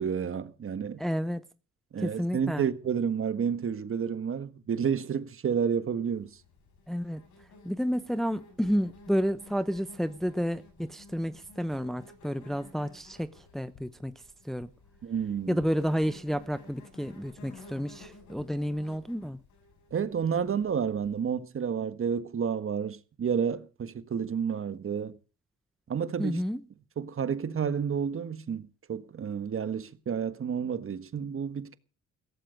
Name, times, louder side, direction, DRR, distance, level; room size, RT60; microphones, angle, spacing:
voice 1, 0.0-1.0 1.9-6.3 15.0-15.6 19.9-25.2 25.9-26.4 27.0-31.8, right 7 dB, 45° right, 1.5 m, -30 dB
voice 2, 1.0-1.4 2.0-2.7 6.9-7.2 7.6-14.1 14.4-14.7 15.5-19.4 26.2-26.6, equal, ahead, 0.8 m, -30 dB
Insect, 6.1-21.3, left 3 dB, 75° left, 7.3 m, -54 dB
16.5 x 14.0 x 5.2 m
cardioid pair, 90°, 30 cm